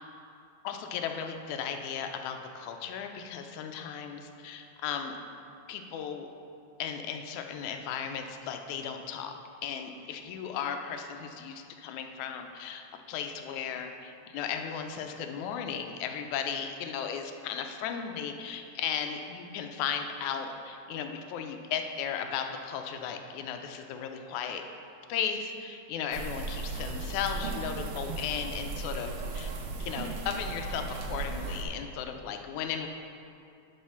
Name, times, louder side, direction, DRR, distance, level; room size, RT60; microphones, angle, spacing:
voice 1, 0.6-5.2 5.7-6.3 6.8-9.3 9.6-24.6 25.1-29.5 29.8-30.8 31.1-32.9, left 7 dB, 85° left, 5 dB, 2.0 m, -36 dB
sound 1, 26.1-31.7, right 3 dB, 80° right, 1.2 m, -36 dB
10.5 x 4.4 x 5.6 m, 2.6 s
omnidirectional pair, 3.4 m